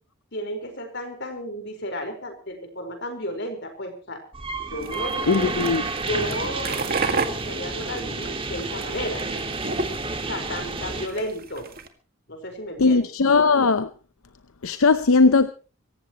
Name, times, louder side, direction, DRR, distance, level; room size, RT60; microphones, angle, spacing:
voice 1, 0.3-4.2 4.7-5.5 6.0-9.3 10.3-11.7 12.3-13.1, equal, 55° left, 4.7 m, -33 dB
sound 1, 4.3-11.1, right 3 dB, 25° right, 1.9 m, -30 dB
sound 2, 4.8-11.9, right 4 dB, 45° right, 1.9 m, -32 dB
voice 2, 5.3-5.9 12.8-13.9 14.6-15.5, left 4 dB, 80° left, 0.7 m, -18 dB
25.0 x 15.0 x 3.0 m
head